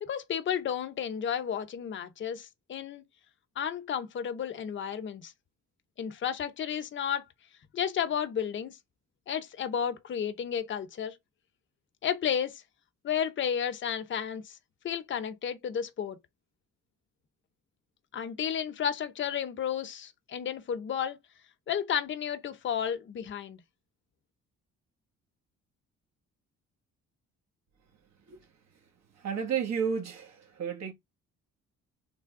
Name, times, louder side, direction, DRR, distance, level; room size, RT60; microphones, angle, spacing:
voice 1, 0.0-3.0 3.6-5.3 6.0-7.2 7.7-8.8 9.3-11.2 12.0-12.6 13.0-14.6 14.8-16.2 18.1-21.2 21.7-23.6, left 8 dB, 40° left, 0.6 m, -32 dB
voice 2, 29.1-30.9, right 7 dB, 60° right, 1.2 m, -32 dB
3.3 x 2.2 x 3.5 m
cardioid pair, 90°, 30 cm